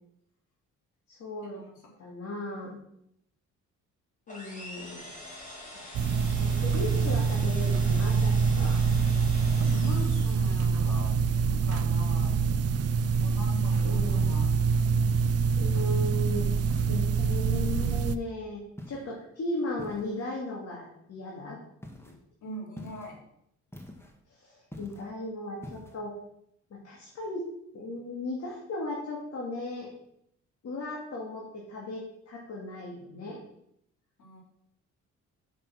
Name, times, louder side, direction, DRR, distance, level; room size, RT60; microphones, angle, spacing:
voice 1, 1.1-1.6 2.0-2.8 4.3-5.0 6.4-8.8 13.8-14.3 15.6-16.5 16.9-21.6 22.1-22.2 24.3-26.2 26.7-27.4 27.7-29.9 30.6-33.4, left 2 dB, 55° left, -3 dB, 2.3 m, -36 dB
sound 1, 4.3-10.8, left 1 dB, 25° left, 3.1 m, -45 dB
sound 2, 5.9-18.2, right 5 dB, 55° right, 0.5 m, -25 dB
voice 2, 9.7-12.4 13.2-14.5 22.4-23.2 34.2-34.4, left 1 dB, 75° left, -2 dB, 3.4 m, -42 dB
sound 3, 15.8-16.1 16.7-17.3 17.8-18.2 18.8-19.2 19.8-20.3 21.8-22.2 22.8-23.2 23.7-24.2 24.7-25.1 25.6-26.0, left 1 dB, 10° left, 1.5 m, -45 dB
6.5 x 6.0 x 6.2 m, 0.76 s
cardioid pair, 90°, 30 cm